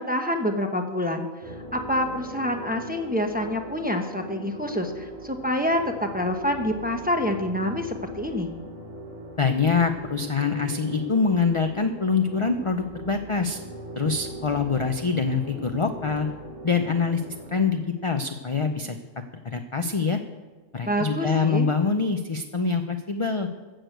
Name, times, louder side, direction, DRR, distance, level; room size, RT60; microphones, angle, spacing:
voice 1, 0.0-8.5 20.9-21.7, left 1 dB, 10° right, 3 dB, 0.9 m, -27 dB
sound 1, 1.4-17.7, right 1 dB, 65° right, 2.0 m, -40 dB
voice 2, 9.4-13.6 14.0-16.3 16.6-17.2 17.5-19.0 19.4-20.2 20.7-23.5, left 5 dB, 35° left, 6 dB, 0.5 m, -24 dB
14.0 x 6.6 x 7.9 m, 1.3 s
omnidirectional pair, 1.4 m